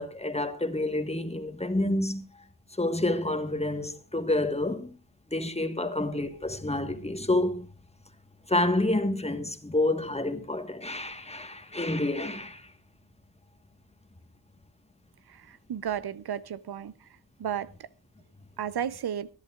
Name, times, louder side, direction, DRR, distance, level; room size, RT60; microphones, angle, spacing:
voice 1, 0.0-2.2 2.8-4.9 5.3-7.7 8.5-12.7, left 2 dB, 15° left, 1.4 m, -28 dB
voice 2, 15.3-16.9 17.4-17.7 18.6-19.3, right 9 dB, 85° right, 0.7 m, -33 dB
24.0 x 11.0 x 2.4 m
wide cardioid pair, 95°, 37 cm